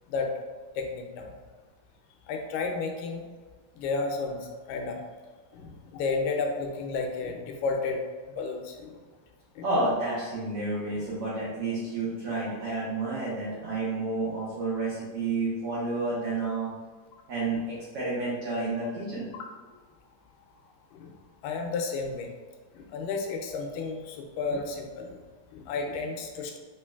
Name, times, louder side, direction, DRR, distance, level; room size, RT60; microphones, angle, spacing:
voice 1, 0.8-1.3 2.3-3.2 3.8-5.0 5.5-8.0 8.3-9.0 9.6-9.7 19.3-19.4 20.9-21.1 21.4-22.3 22.7-25.2 25.5-26.6, left 4 dB, 85° left, 2 dB, 2.1 m, -32 dB
voice 2, 9.6-16.7 17.3-19.3, right 2 dB, 85° right, -8 dB, 1.3 m, -30 dB
5.0 x 3.1 x 2.2 m, 1.4 s
omnidirectional pair, 3.9 m